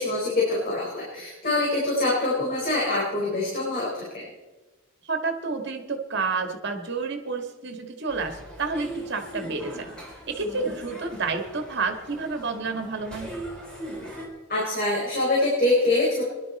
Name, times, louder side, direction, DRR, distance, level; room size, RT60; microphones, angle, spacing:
voice 1, 0.0-4.2 14.5-16.3, left 2 dB, 45° left, -5 dB, 4.6 m, -24 dB
voice 2, 5.0-9.9 10.2-13.3, right 4 dB, 60° right, 5 dB, 1.7 m, -30 dB
sound 1, 8.1-14.3, right 1 dB, 5° left, 3.9 m, -39 dB
21.0 x 11.5 x 4.2 m, 1.2 s
head